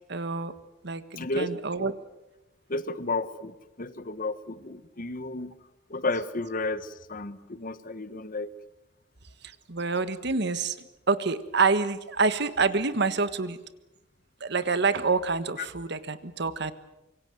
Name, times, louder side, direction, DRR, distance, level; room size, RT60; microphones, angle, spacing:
voice 1, 0.1-0.5 0.8-1.9 9.7-10.8 11.1-13.6 14.4-16.7, right 4 dB, 60° right, 13 dB, 1.5 m, -27 dB
voice 2, 1.2-1.5 1.8-1.9 2.7-5.6 5.9-8.5, left 2 dB, 45° left, 14 dB, 1.2 m, -32 dB
25.5 x 23.5 x 7.8 m, 0.97 s
head